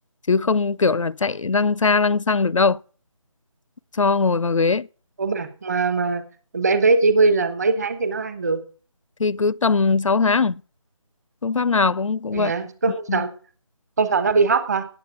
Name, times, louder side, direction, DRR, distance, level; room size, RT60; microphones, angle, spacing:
voice 1, 0.3-2.8 3.9-4.9 9.2-10.5 11.4-12.5 13.1-13.2, left 4 dB, 70° left, 0.4 m, -20 dB
voice 2, 5.2-6.2 6.5-8.6 12.3-13.3 14.0-14.8, right 4 dB, 30° right, 1.3 m, -21 dB
8.9 x 7.9 x 8.3 m
figure-of-eight pair, 160°, 17 cm